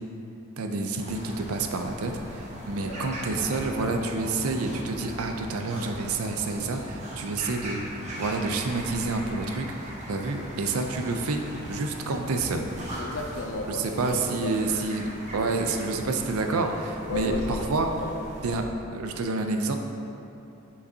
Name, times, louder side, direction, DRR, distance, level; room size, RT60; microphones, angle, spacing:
voice 1, 0.6-11.4 11.7-12.6 13.7-17.9 18.4-19.8, right 3 dB, 85° right, 4 dB, 0.5 m, -28 dB
marshland Ambiance, 1.0-18.5, equal, 30° right, 0.9 m, -39 dB
voice 2, 2.7-3.1 13.0-14.7 17.0-18.2, left 2 dB, 60° left, 2 dB, 0.6 m, -35 dB
6.7 x 5.2 x 2.7 m, 2.9 s
head